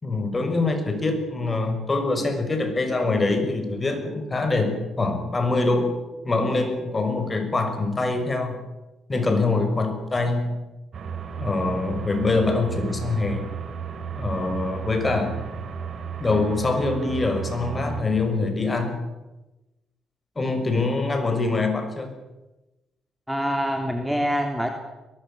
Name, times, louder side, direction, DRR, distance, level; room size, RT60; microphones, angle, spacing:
voice 1, 0.0-6.0 6.2-8.6 9.1-10.6 11.4-13.5 14.2-15.4 16.2-19.0 20.4-22.1, left 3 dB, 25° left, 6 dB, 6.0 m, -24 dB
sound 1, 10.9-18.0, right 7 dB, 60° right, 4.4 m, -34 dB
voice 2, 23.3-24.8, equal, 5° right, 4 dB, 3.2 m, -25 dB
22.5 x 19.5 x 8.7 m, 1.0 s
cardioid pair, 90°, 0 cm